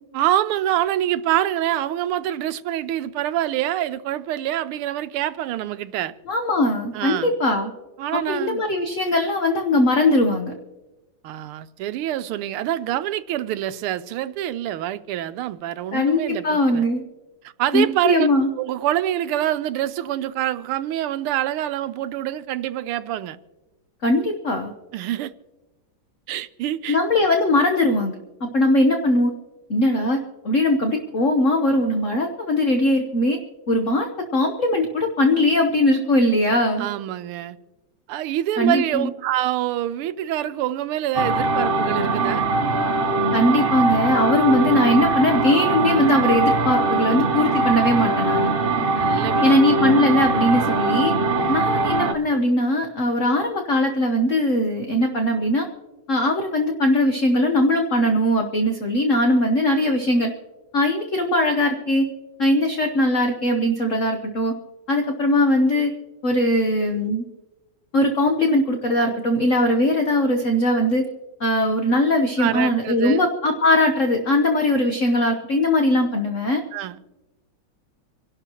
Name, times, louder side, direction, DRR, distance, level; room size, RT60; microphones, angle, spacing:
voice 1, 0.1-6.1 6.9-7.3 8.0-8.6 11.2-16.8 17.6-18.3 18.6-23.4 24.9-25.3 26.3-27.0 36.8-37.6 38.1-42.4 48.9-49.5 51.4-51.6 72.4-73.3 76.7-77.0, right 12 dB, 85° right, 1.5 m, -25 dB
voice 2, 6.3-7.7 8.1-10.5 15.9-17.0 17.7-18.5 24.0-24.7 26.9-28.1 28.4-29.3 29.7-33.4 33.7-36.9 38.6-39.1 43.3-48.5 49.4-51.1 51.5-55.7 56.1-60.3 60.7-62.1 62.4-64.5 64.9-65.9 66.2-67.3 67.9-71.0 71.4-76.6, left 1 dB, 45° left, 1.1 m, -20 dB
sound 1, 41.1-52.1, right 3 dB, 70° right, 0.5 m, -21 dB
27.0 x 12.0 x 3.0 m
omnidirectional pair, 2.4 m